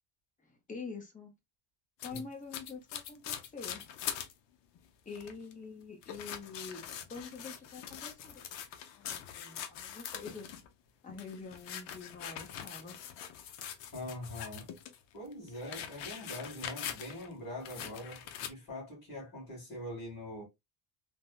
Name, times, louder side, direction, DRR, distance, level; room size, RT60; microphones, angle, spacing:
voice 1, 0.4-1.3 2.0-3.8 5.1-6.8 7.1-8.4 8.9-10.5 11.0-13.0, left 4 dB, 15° left, 0.8 m, -46 dB
sound 1, 2.0-4.3 4.8-4.9 5.1-5.5 6.0-10.7 11.1-15.0 15.3-17.3 17.7-18.5, left 9 dB, 65° left, 0.7 m, -43 dB
voice 2, 13.9-14.7 15.1-20.4, left 1 dB, 40° left, 2.0 m, -43 dB
3.4 x 2.1 x 2.4 m
cardioid pair, 140°, 47 cm